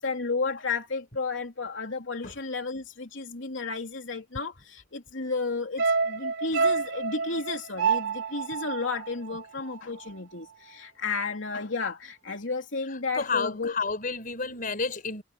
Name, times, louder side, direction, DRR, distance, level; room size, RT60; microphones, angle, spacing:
voice 1, 0.0-13.8, left 4 dB, 75° left, 3.1 m, -32 dB
sound 1, 5.8-10.2 10.5-10.6, right 5 dB, 65° right, 5.5 m, -28 dB
voice 2, 13.2-15.2, left 4 dB, 45° left, 4.6 m, -30 dB
head